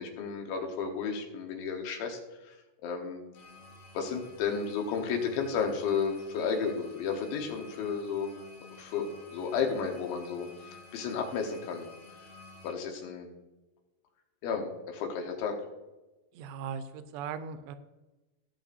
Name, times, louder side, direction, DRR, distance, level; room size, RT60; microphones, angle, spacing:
voice 1, 0.0-2.2 2.4-2.5 2.8-3.2 4.0-8.3 8.8-9.1 9.3-10.5 10.9-11.9 12.6-13.3 14.4-15.5, left 6 dB, 90° left, 3 dB, 3.6 m, -32 dB
sound 1, 3.3-12.7, left 3 dB, 50° left, 2.4 m, -52 dB
voice 2, 16.3-17.8, right 7 dB, 85° right, 10 dB, 2.8 m, -38 dB
17.0 x 6.7 x 2.7 m, 1.1 s
omnidirectional pair, 5.1 m